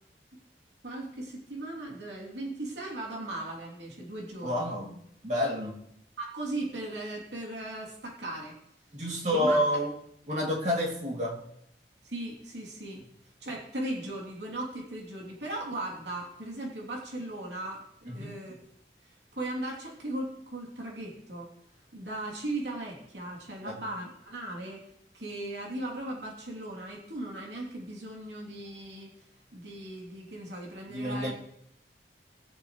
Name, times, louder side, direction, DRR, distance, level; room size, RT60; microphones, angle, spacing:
voice 1, 0.8-4.7 6.2-8.5 9.3-9.6 12.0-13.0 13.4-18.5 19.0-21.5 21.9-24.8 25.1-29.1 29.5-31.3, right 1 dB, 85° right, -2 dB, 3.2 m, -37 dB
voice 2, 4.4-4.9 5.2-5.7 8.9-9.9 10.3-11.4 18.1-18.4 23.6-23.8 30.9-31.3, equal, 40° right, -2 dB, 2.8 m, -29 dB
19.5 x 8.6 x 3.2 m, 0.72 s
head